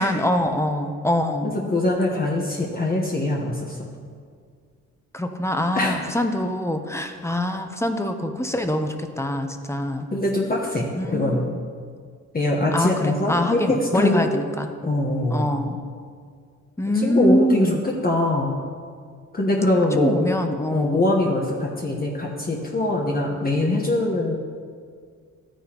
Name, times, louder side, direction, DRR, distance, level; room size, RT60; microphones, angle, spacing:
voice 1, 0.0-1.5 5.1-10.1 10.9-11.6 12.7-14.7 15.3-15.8 16.8-17.8 20.0-21.0, left 1 dB, 10° left, 6 dB, 0.8 m, -24 dB
voice 2, 1.4-3.9 5.7-6.1 10.1-11.5 12.3-14.3 14.8-15.5 16.9-17.8 18.0-18.6 19.3-20.1 20.7-24.4, left 1 dB, 30° left, -2 dB, 1.2 m, -23 dB
13.5 x 9.1 x 3.0 m, 2.1 s
cardioid pair, 90°, 30 cm